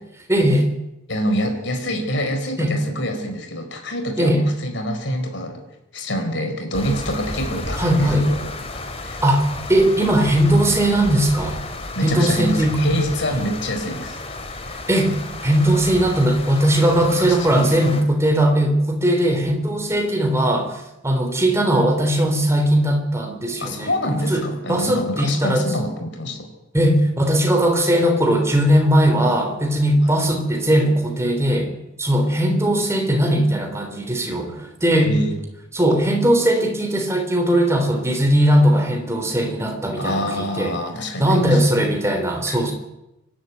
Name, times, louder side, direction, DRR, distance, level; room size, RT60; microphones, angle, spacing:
voice 1, 0.3-0.7 2.6-2.7 4.2-4.4 7.8-8.3 9.2-11.6 12.0-13.0 14.7-15.1 15.4-25.7 26.7-31.7 32.0-35.1 35.7-40.7 41.2-42.7, right 1 dB, 15° right, 3 dB, 3.6 m, -19 dB
voice 2, 1.1-5.6 5.9-8.4 9.0-9.2 11.9-14.2 17.0-17.9 23.6-26.4 30.0-30.2 35.0-35.3 40.0-41.8 42.5-42.6, equal, 60° left, 5 dB, 4.6 m, -26 dB
sound 1, 6.7-18.0, left 2 dB, 30° left, 2.6 m, -32 dB
24.5 x 12.5 x 9.4 m, 0.91 s
head